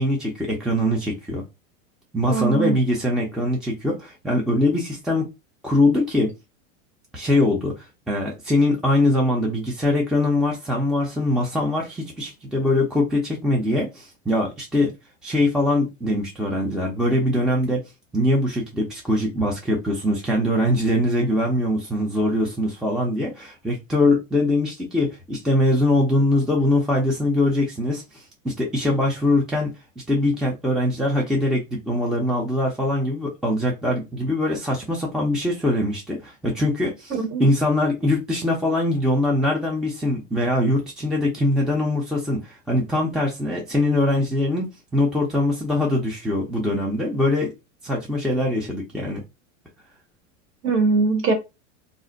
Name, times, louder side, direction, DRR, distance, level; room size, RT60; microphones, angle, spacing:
voice 1, 0.0-1.4 2.1-5.3 5.6-6.3 7.1-14.9 15.2-17.8 18.1-47.5 47.8-49.2, left 1 dB, ahead, 0.5 m, -22 dB
voice 2, 2.2-2.8 37.1-37.5 50.6-51.3, right 4 dB, 30° right, 1.0 m, -21 dB
2.5 x 2.0 x 3.8 m
hypercardioid pair, 115°, 38 cm